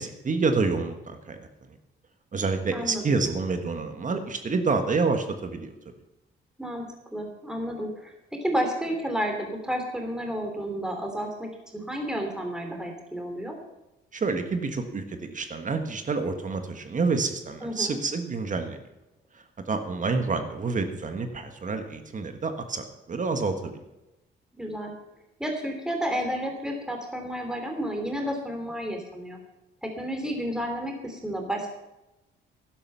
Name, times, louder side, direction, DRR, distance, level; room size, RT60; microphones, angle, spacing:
voice 1, 0.0-1.5 2.3-5.7 14.1-18.8 19.3-23.7, right 4 dB, 40° right, 7 dB, 1.5 m, -28 dB
voice 2, 2.7-3.2 6.6-6.8 7.1-8.1 8.4-13.6 17.6-18.0 24.6-24.9 25.4-29.4 29.8-31.7, equal, 5° right, 2 dB, 3.0 m, -31 dB
12.0 x 11.5 x 5.7 m, 0.96 s
cardioid pair, 90°, 20 cm